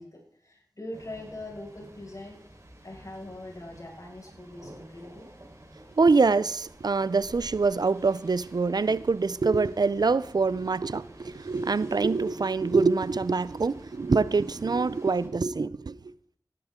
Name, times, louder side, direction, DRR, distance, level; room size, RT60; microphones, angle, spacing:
voice 1, 0.0-2.4 2.8-5.3, left 1 dB, 55° left, 5.6 m, -42 dB
sound 1, 0.9-15.3, right 1 dB, 45° right, 4.1 m, -51 dB
voice 2, 6.0-16.0, right 4 dB, 70° right, 0.5 m, -25 dB
18.0 x 11.5 x 3.7 m
wide cardioid pair, 45°, 7 cm